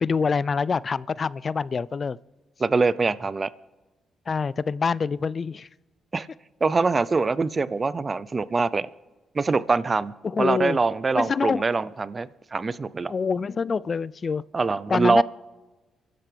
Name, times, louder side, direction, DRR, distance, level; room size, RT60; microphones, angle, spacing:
voice 1, 0.0-2.2 4.3-5.7 10.2-10.8 11.1-11.6 13.1-14.4 14.9-15.2, left 5 dB, 45° left, 22 dB, 0.4 m, -25 dB
voice 2, 2.6-3.5 6.1-6.3 6.6-8.9 9.3-13.1 14.5-15.2, right 4 dB, 40° right, 18 dB, 0.6 m, -24 dB
28.5 x 12.0 x 3.4 m, 1.2 s
supercardioid pair, 50°, 0 cm